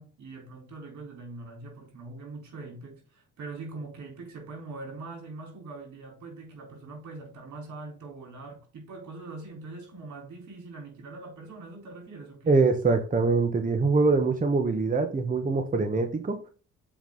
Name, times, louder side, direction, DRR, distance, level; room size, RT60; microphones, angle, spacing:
voice 1, 0.0-12.6, right 3 dB, 75° right, 4.1 m, -42 dB
voice 2, 12.5-16.4, right 3 dB, 25° right, 1.2 m, -24 dB
7.2 x 5.4 x 3.8 m
cardioid pair, 90°, 30 cm